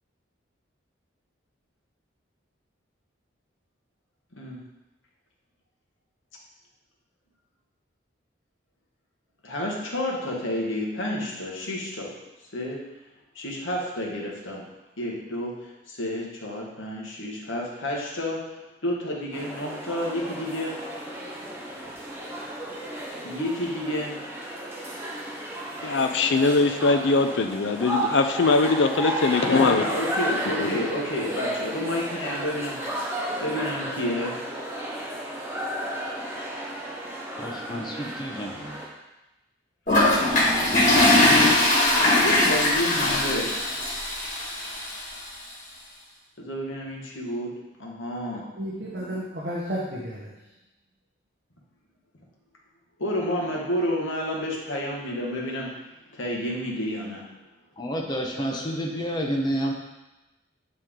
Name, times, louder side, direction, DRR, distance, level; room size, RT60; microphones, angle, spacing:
voice 1, 9.4-12.2 12.5-12.8 13.3-14.6 15.0-18.5 18.8-20.8 23.2-24.2 29.5-32.8 33.4-34.4 42.2-43.6 46.4-47.5 47.8-48.5 53.0-55.8 56.1-57.3, left 1 dB, 80° left, -2 dB, 1.4 m, -30 dB
sound 1, 19.3-38.9, right 1 dB, 10° right, 0.8 m, -33 dB
voice 2, 25.8-29.9 30.6-30.8, left 3 dB, 65° left, 7 dB, 0.5 m, -21 dB
voice 3, 37.4-38.8 57.8-59.7, equal, 20° left, 0 dB, 0.8 m, -29 dB
Toilet flush, 39.9-44.9, left 1 dB, 40° left, 1.7 m, -20 dB
voice 4, 48.6-50.3 58.3-58.7, equal, 55° right, -4 dB, 0.9 m, -33 dB
9.1 x 3.3 x 3.7 m, 0.99 s
head